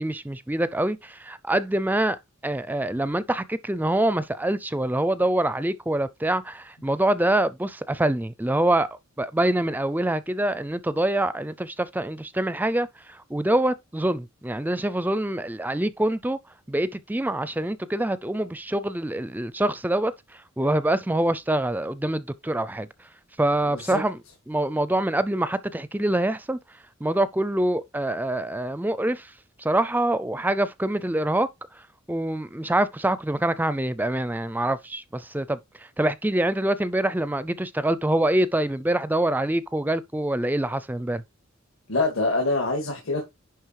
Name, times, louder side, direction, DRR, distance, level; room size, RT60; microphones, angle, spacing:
voice 1, 0.0-2.2 2.4-8.9 9.2-16.4 16.7-23.1 23.4-24.2 24.5-26.6 27.0-29.3 29.6-41.2, right 1 dB, 10° right, 0.4 m, -25 dB
voice 2, 41.9-43.2, left 2 dB, 70° left, 2.4 m, -25 dB
10.5 x 3.9 x 4.7 m
head